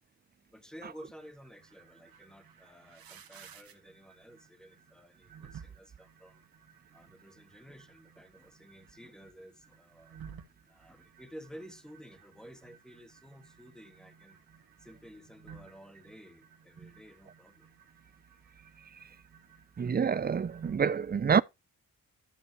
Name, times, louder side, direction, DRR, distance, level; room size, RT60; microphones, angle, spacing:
voice 1, 0.5-6.5 6.9-14.4 14.8-17.7, equal, ahead, 1.7 m, -53 dB
sound 1, 1.2-20.8, right 7 dB, 90° right, 1.6 m, -56 dB
voice 2, 19.8-21.4, right 6 dB, 30° right, 0.4 m, -27 dB
12.5 x 7.1 x 3.0 m
cardioid pair, 80°, 34 cm